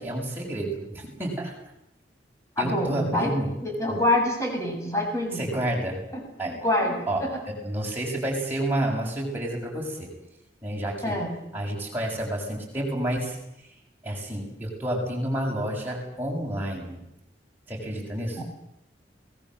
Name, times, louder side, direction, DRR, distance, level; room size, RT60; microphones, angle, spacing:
voice 1, 0.0-1.5 2.6-3.5 3.9-4.0 5.4-6.0 6.4-6.6 7.1-10.1 10.6-11.1 11.5-13.4 14.0-17.0 17.7-18.4, right 1 dB, 10° right, -2 dB, 7.2 m, -30 dB
voice 2, 2.6-3.3 3.6-5.4 6.1-7.4 11.0-11.4 18.4-18.5, left 1 dB, 15° left, 1 dB, 7.0 m, -26 dB
28.0 x 19.5 x 7.8 m, 0.81 s
head